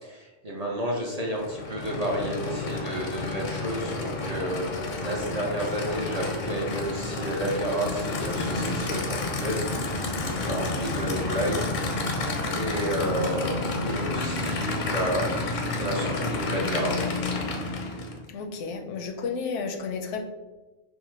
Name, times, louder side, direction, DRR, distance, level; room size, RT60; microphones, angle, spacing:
voice 1, 0.0-9.7 10.3-11.6 12.0-12.2 12.5-17.1, right 1 dB, 45° right, -3 dB, 0.5 m, -31 dB
Aircraft / Idling, 1.3-18.2, left 3 dB, 55° left, 0.5 m, -30 dB
voice 2, 18.3-20.2, left 5 dB, 80° left, 4 dB, 0.9 m, -32 dB
5.5 x 2.0 x 3.1 m, 1.1 s
omnidirectional pair, 1.2 m